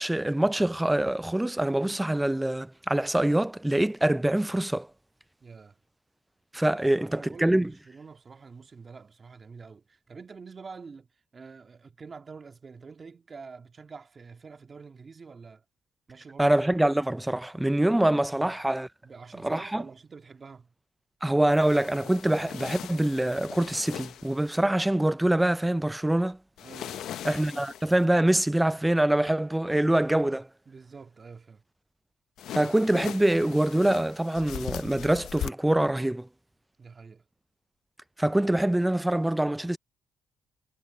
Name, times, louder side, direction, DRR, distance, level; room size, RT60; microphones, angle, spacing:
voice 1, 0.0-4.9 6.5-7.7 16.4-18.9 19.4-19.8 21.2-26.4 27.2-30.5 32.6-36.3 38.2-39.8, right 1 dB, 10° right, 0.3 m, -24 dB
voice 2, 5.4-5.8 6.7-11.1 11.3-15.6 16.1-16.6 18.4-18.5 19.0-20.7 26.6-27.2 30.7-31.6 36.8-37.2, right 5 dB, 35° right, 2.0 m, -46 dB
sound 1, 21.5-24.6 26.6-28.1 32.4-35.5, left 11 dB, 75° left, 0.6 m, -40 dB
cardioid pair, 90°, 0 cm